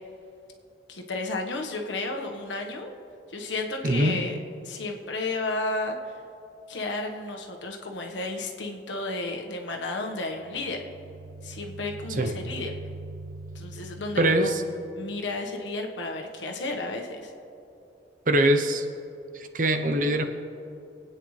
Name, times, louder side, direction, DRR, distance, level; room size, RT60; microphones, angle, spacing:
voice 1, 0.9-2.9 3.3-4.4 4.6-6.1 6.7-10.9 11.4-12.7 13.5-14.5 15.0-17.3, left 2 dB, 85° left, 2 dB, 1.4 m, -32 dB
voice 2, 3.8-4.2 12.1-12.3 14.2-14.6 18.3-18.9 19.3-20.2, right 1 dB, 45° right, 6 dB, 0.8 m, -23 dB
sound 1, 10.3-15.1, right 2 dB, 80° right, 0.6 m, -42 dB
25.0 x 9.1 x 3.3 m, 2.7 s
head